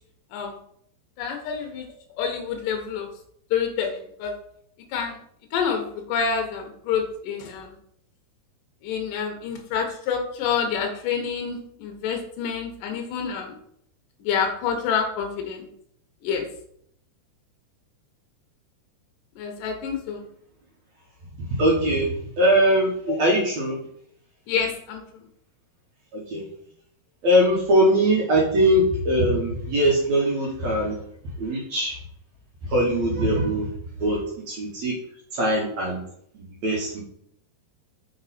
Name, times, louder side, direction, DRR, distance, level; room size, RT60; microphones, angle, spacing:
voice 1, 1.2-1.9 2.2-3.1 3.5-4.3 4.9-5.2 5.5-7.7 8.8-13.5 14.2-15.7 16.2-16.5 19.4-20.2 24.5-25.0, left 6 dB, 75° left, 3 dB, 2.0 m, -27 dB
voice 2, 21.4-23.7 26.1-26.4 27.2-31.0 31.4-32.0 32.6-33.7 34.0-34.2 34.5-34.9 35.3-36.0 36.3-37.0, equal, 70° right, -3 dB, 1.7 m, -21 dB
6.2 x 3.9 x 4.1 m, 0.69 s
omnidirectional pair, 4.6 m